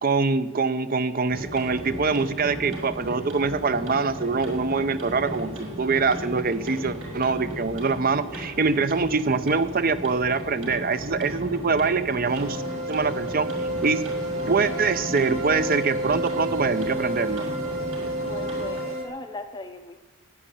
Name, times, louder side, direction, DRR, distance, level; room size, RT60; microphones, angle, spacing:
voice 1, 0.0-12.6 12.9-14.0 14.5-17.5, right 4 dB, 40° right, 13 dB, 0.7 m, -24 dB
sound 1, 1.3-18.8, equal, 65° right, 5.5 m, -36 dB
sound 2, 12.2-19.0, right 1 dB, 85° right, 2.3 m, -30 dB
voice 2, 18.2-20.0, left 2 dB, 20° left, 6 dB, 0.6 m, -38 dB
11.0 x 9.1 x 9.9 m, 1.2 s
head